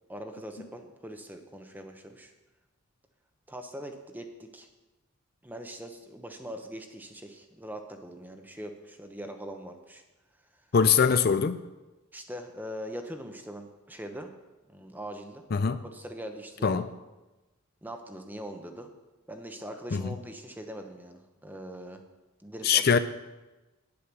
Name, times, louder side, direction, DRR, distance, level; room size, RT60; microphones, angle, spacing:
voice 1, 0.1-2.3 3.5-4.7 5.4-10.0 12.1-14.3 14.7-15.4 15.8-16.9 17.8-18.9 19.3-22.0 22.4-22.8, equal, 10° right, 5 dB, 0.9 m, -42 dB
voice 2, 10.7-11.6 15.5-15.8 16.6-16.8 19.9-20.0 22.6-23.0, left 6 dB, 50° left, 11 dB, 0.4 m, -22 dB
9.6 x 8.6 x 6.1 m, 1.1 s
head